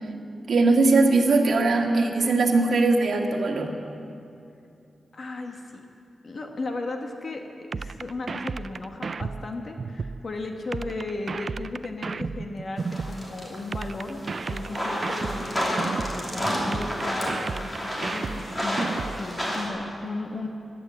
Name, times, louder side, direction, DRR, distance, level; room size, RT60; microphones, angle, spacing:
voice 1, 0.5-3.8, right 3 dB, 60° right, 1 dB, 1.7 m, -20 dB
voice 2, 5.1-5.8 6.2-17.7 18.0-20.5, left 2 dB, 45° left, 3 dB, 1.1 m, -35 dB
sound 1, 7.7-10.2 10.7-13.2 13.7-16.2 16.7-19.2, right 4 dB, 45° right, 0.3 m, -33 dB
sound 2, 12.8-19.7, equal, 15° left, 2.9 m, -30 dB
16.5 x 11.5 x 7.5 m, 2.6 s
wide cardioid pair, 135°, 0 cm